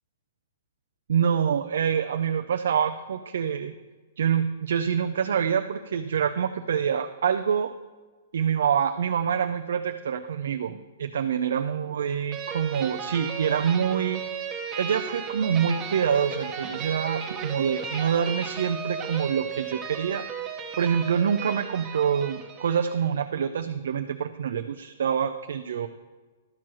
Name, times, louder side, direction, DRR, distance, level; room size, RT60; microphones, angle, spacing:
voice 1, 1.1-3.7 4.2-7.7 8.3-14.5 14.8-20.2 20.8-25.9, right 7 dB, 75° right, 6 dB, 0.5 m, -26 dB
sound 1, 12.3-23.1, right 7 dB, 20° right, 1.0 m, -35 dB
12.0 x 4.6 x 6.1 m, 1.3 s
hypercardioid pair, 150°, 0 cm